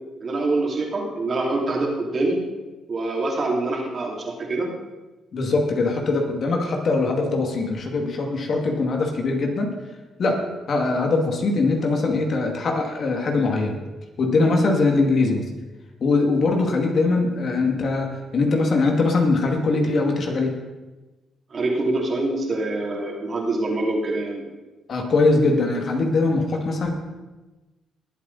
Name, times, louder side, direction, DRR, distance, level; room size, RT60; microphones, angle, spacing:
voice 1, 0.2-2.4 2.9-4.7 21.5-24.4, right 2 dB, 45° right, -1 dB, 3.2 m, -25 dB
voice 2, 5.3-9.7 10.2-10.4 10.7-13.8 14.2-15.4 16.0-20.5 24.9-26.9, left 3 dB, 55° left, 2 dB, 2.4 m, -21 dB
19.5 x 8.2 x 4.2 m, 1.2 s
cardioid pair, 90°, 0 cm